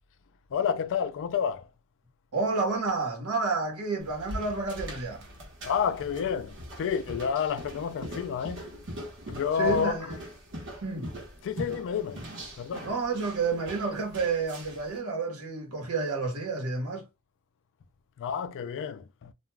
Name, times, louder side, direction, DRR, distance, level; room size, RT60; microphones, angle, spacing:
voice 1, 0.5-1.7 5.6-8.6 9.3-10.2 11.4-12.3 12.6-12.9 18.2-19.3, left 7 dB, 55° left, 0.3 m, -30 dB
voice 2, 2.3-5.3 9.6-10.1 10.8-11.1 12.8-17.0, right 4 dB, 75° right, 1.1 m, -30 dB
sound 1, 4.0-14.9, equal, 55° right, 1.1 m, -42 dB
2.4 x 2.2 x 3.2 m
head